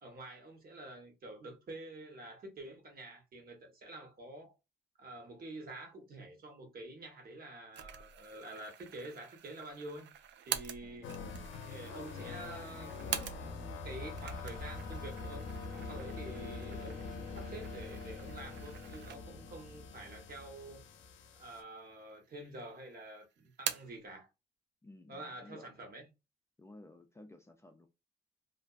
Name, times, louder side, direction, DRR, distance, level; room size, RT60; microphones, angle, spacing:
voice 1, 0.0-4.5 5.0-10.1 10.5-11.1 11.7-20.9 21.4-24.3 25.1-26.0, right 2 dB, 50° right, 1.1 m, -48 dB
sound 1, 7.7-13.7 14.1-19.5 20.0-20.1 20.9-21.6 21.9-22.6 22.9-24.0, right 9 dB, 65° right, 0.4 m, -45 dB
voice 2, 10.8-11.7 24.8-25.7 26.6-27.9, left 2 dB, 15° left, 0.5 m, -56 dB
sound 2, 11.0-21.6, left 4 dB, 75° left, 0.5 m, -44 dB
2.5 x 2.2 x 2.3 m
cardioid pair, 90°, 20 cm